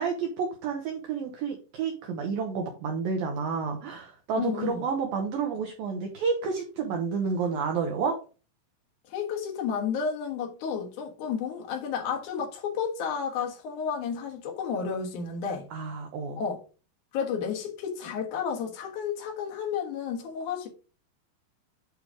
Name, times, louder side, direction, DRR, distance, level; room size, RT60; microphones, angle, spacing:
voice 1, 0.0-8.2 15.7-16.4, right 5 dB, 80° right, 2.1 m, -30 dB
voice 2, 4.4-4.8 9.1-15.7 16.4-16.6 17.1-20.7, left 6 dB, 60° left, 2.1 m, -31 dB
8.8 x 3.2 x 5.0 m
omnidirectional pair, 5.5 m